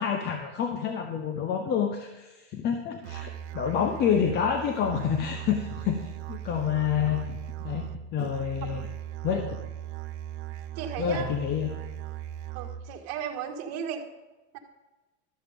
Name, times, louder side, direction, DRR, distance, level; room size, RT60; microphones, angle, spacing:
voice 1, 0.0-7.4 7.6-7.8 8.1-8.9 9.2-9.6 11.0-11.7, left 8 dB, 30° left, 5 dB, 0.8 m, -28 dB
Musical instrument, 3.0-13.0, right 12 dB, 70° right, 0.8 m, -38 dB
voice 2, 10.8-11.3 12.5-14.0 14.5-14.6, right 8 dB, 50° right, 3 dB, 1.7 m, -35 dB
12.5 x 7.3 x 5.2 m, 1.2 s
supercardioid pair, 155°, 34 cm